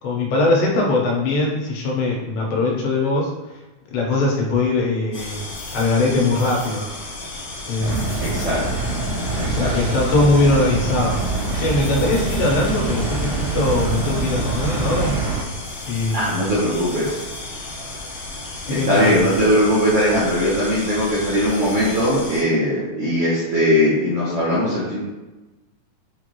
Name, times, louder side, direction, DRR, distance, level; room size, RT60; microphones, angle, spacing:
voice 1, 0.0-3.6 3.9-5.5 5.7-6.9 7.7-8.2 9.5-15.2 15.9-16.4 18.6-19.3, left 2 dB, 85° left, -1 dB, 2.9 m, -21 dB
sound 1, 5.1-22.4, left 2 dB, 60° left, 1.5 m, -34 dB
sound 2, 7.8-15.4, right 3 dB, 80° right, 1.4 m, -25 dB
voice 2, 8.2-8.6 9.4-9.7 16.1-17.2 18.7-25.0, equal, 65° right, -10 dB, 1.5 m, -20 dB
6.9 x 2.6 x 3.0 m, 1.1 s
omnidirectional pair, 4.2 m